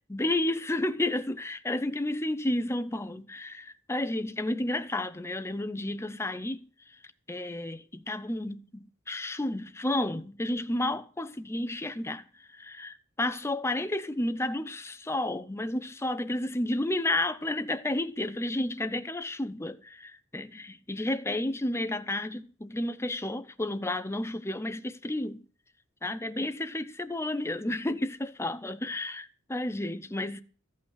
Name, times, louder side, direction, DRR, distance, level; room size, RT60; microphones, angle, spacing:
voice 1, 0.1-6.7 7.3-25.4 26.0-30.4, left 1 dB, 15° left, 0.7 m, -31 dB
14.0 x 5.7 x 9.6 m
head